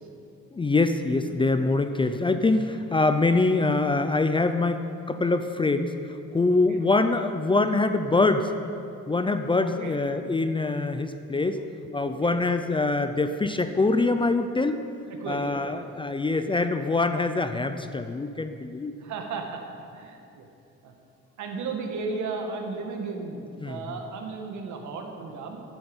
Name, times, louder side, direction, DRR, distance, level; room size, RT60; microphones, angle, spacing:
voice 1, 0.5-6.0 6.3-8.5 9.1-11.6 11.9-14.8 15.3-18.9 23.6-23.8, left 3 dB, 15° left, 9 dB, 0.5 m, -24 dB
voice 2, 6.5-6.8 9.6-9.9 12.0-12.3 15.2-15.8 19.0-19.6 19.9-20.5 20.8-20.9 21.4-25.6, right 4 dB, 70° right, 3 dB, 2.1 m, -35 dB
14.0 x 12.5 x 5.6 m, 2.5 s
cardioid pair, 135°, 31 cm